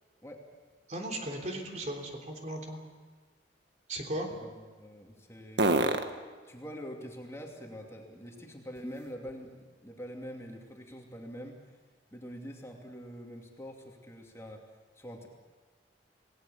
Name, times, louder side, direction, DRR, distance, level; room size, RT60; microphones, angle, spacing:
sound 1, 0.6-9.7 10.1-13.9, right 2 dB, 80° right, 1.5 m, -39 dB
voice 1, 0.9-2.8 3.9-4.3, right 1 dB, 40° right, 2 dB, 3.4 m, -36 dB
voice 2, 4.3-6.1 6.4-11.8 12.1-14.7 14.9-15.3, equal, 15° left, 0 dB, 2.7 m, -45 dB
27.5 x 19.0 x 7.1 m, 1.4 s
head